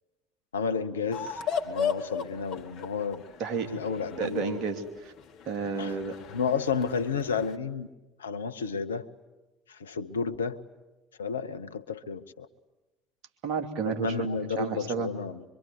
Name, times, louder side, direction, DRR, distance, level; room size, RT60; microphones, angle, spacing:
voice 1, 0.5-3.2 3.7-4.6 5.8-5.9 6.3-7.9 8.2-9.1 9.7-10.6 11.2-12.5 13.8-15.4, left 5 dB, 85° left, 11 dB, 0.9 m, -31 dB
sound 1, 1.1-7.6, left 6 dB, 55° left, 1.7 m, -36 dB
voice 2, 4.2-5.1 5.4-6.2 13.4-14.3 14.6-15.1, right 5 dB, 55° right, 5 dB, 2.9 m, -31 dB
24.5 x 24.5 x 9.5 m, 1.1 s
figure-of-eight pair, 60°, 0 cm